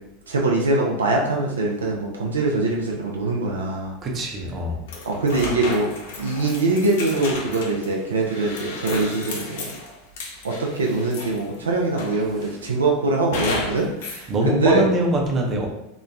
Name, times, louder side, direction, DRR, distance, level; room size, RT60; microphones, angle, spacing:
voice 1, 0.3-3.9 5.1-5.9 6.2-9.7 10.4-14.9, right 2 dB, 90° right, -1 dB, 0.4 m, -23 dB
voice 2, 4.0-4.8 14.3-15.7, right 1 dB, 35° right, 0 dB, 0.6 m, -22 dB
sound 1, 4.9-11.5 12.0-12.6 13.3-14.3, left 2 dB, 70° left, 0.5 m, -33 dB
2.9 x 2.1 x 2.5 m, 0.84 s
hypercardioid pair, 90°, 0 cm